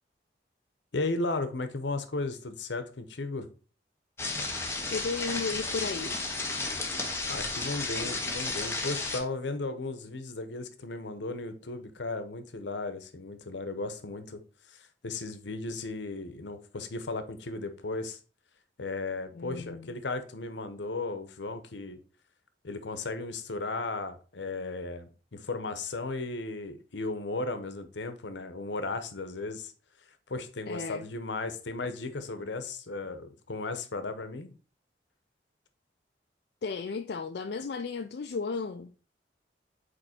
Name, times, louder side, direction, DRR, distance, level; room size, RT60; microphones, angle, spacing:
voice 1, 0.9-3.5 7.3-14.4 14.7-18.2 18.8-22.0 22.6-29.7 30.3-34.5, left 3 dB, 80° left, 0.9 m, -35 dB
sound 1, 4.2-9.2, left 3 dB, 15° left, 1.0 m, -33 dB
voice 2, 4.9-6.1 19.3-19.9 30.7-31.1 36.6-38.9, left 4 dB, 65° left, 0.4 m, -34 dB
5.2 x 4.3 x 4.3 m
head